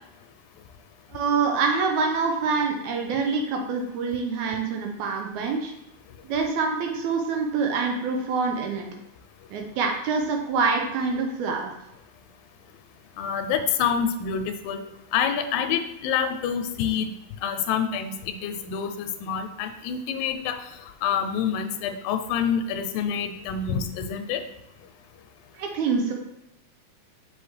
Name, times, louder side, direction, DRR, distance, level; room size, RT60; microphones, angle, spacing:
voice 1, 1.1-5.7 6.2-8.9 9.5-11.7 25.5-26.1, right 4 dB, 80° right, 3 dB, 1.8 m, -26 dB
voice 2, 13.2-14.8 15.1-17.1 17.4-24.4, left 7 dB, 90° left, 7 dB, 2.3 m, -27 dB
6.2 x 4.9 x 3.3 m, 0.90 s
omnidirectional pair, 4.0 m